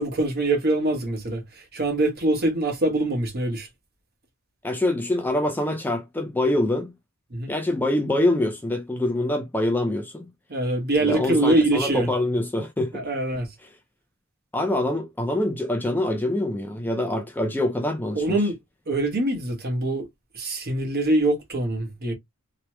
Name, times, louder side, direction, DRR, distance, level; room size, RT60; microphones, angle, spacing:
voice 1, 0.0-3.7 7.3-7.5 10.5-12.1 12.9-13.5 18.1-18.6 18.9-20.1 20.3-22.1, right 2 dB, 45° right, 1.1 m, -24 dB
voice 2, 4.6-6.9 7.5-10.3 11.0-13.0 14.5-18.4, left 1 dB, 10° left, 0.4 m, -25 dB
3.0 x 2.0 x 3.0 m
head